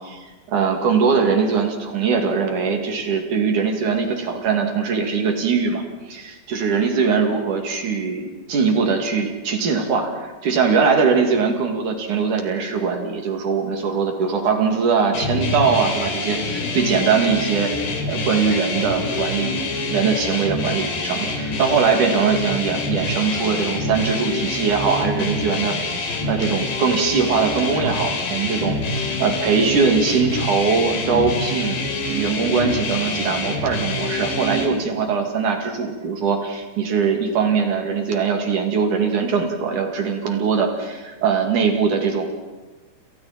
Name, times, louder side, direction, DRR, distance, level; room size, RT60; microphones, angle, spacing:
voice 1, 0.0-17.7 18.1-31.8 32.1-42.2, right 5 dB, 50° right, 3 dB, 3.6 m, -21 dB
sound 1, 15.1-34.7, left 2 dB, 65° left, 5.2 m, -26 dB
30.0 x 28.5 x 4.4 m, 1.3 s
omnidirectional pair, 5.1 m